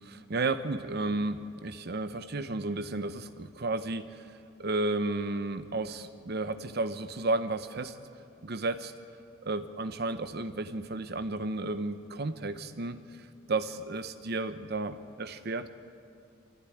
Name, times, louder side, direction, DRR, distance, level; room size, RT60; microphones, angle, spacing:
voice 1, 0.0-8.0 8.4-8.9 9.4-15.7, right 2 dB, 55° right, 10 dB, 0.8 m, -33 dB
25.0 x 15.0 x 9.9 m, 2.5 s
head